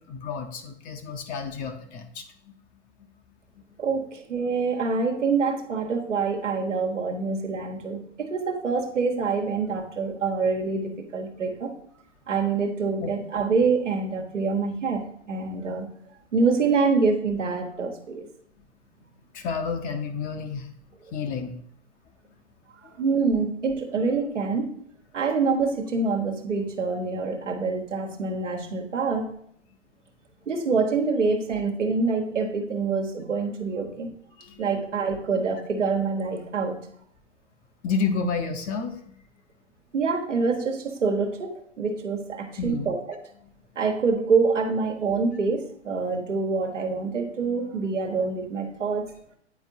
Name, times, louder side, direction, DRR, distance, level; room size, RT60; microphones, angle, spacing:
voice 1, 0.0-2.5 13.0-13.1 19.3-20.7 21.1-21.6 34.4-34.7 37.8-39.2 42.6-42.9 43.4-43.5, left 5 dB, 25° left, 6 dB, 0.6 m, -30 dB
voice 2, 3.8-11.8 12.3-15.9 16.3-18.3 23.0-24.7 25.1-29.3 30.5-34.1 34.6-36.8 39.9-43.2 43.8-49.1, right 4 dB, 85° right, 3 dB, 1.2 m, -26 dB
9.3 x 4.5 x 2.7 m, 0.65 s
hypercardioid pair, 110°, 36 cm